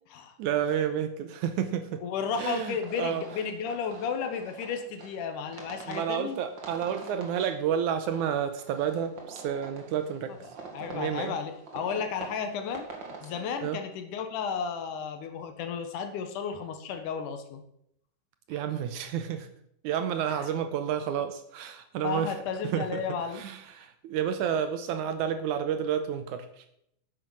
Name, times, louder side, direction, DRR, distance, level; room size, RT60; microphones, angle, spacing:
voice 1, 0.4-2.0 2.4-3.2 5.9-10.3 10.8-11.4 13.6-13.8 18.5-19.5 19.8-22.3 22.6-23.0 23.3-26.6, right 8 dB, 75° right, 9 dB, 2.0 m, -30 dB
voice 2, 2.0-6.4 10.7-12.9 13.2-17.6 20.3-20.4 22.0-23.5, left 6 dB, 75° left, 8 dB, 2.5 m, -33 dB
sound 1, 2.8-13.5, right 4 dB, 40° right, 2.2 m, -46 dB
9.6 x 7.8 x 6.2 m, 0.74 s
omnidirectional pair, 3.8 m